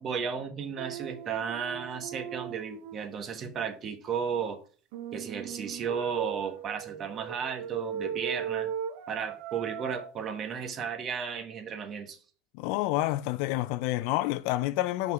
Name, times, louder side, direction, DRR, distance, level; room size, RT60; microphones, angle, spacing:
voice 1, 0.0-4.6 5.1-8.7 9.1-12.2, right 6 dB, 40° right, 1.4 m, -34 dB
sound 1, 0.8-3.1 4.9-10.1, right 9 dB, 75° right, 0.7 m, -37 dB
voice 2, 12.5-15.1, left 16 dB, 70° left, 0.3 m, -28 dB
5.5 x 4.0 x 5.0 m
supercardioid pair, 105°, 0 cm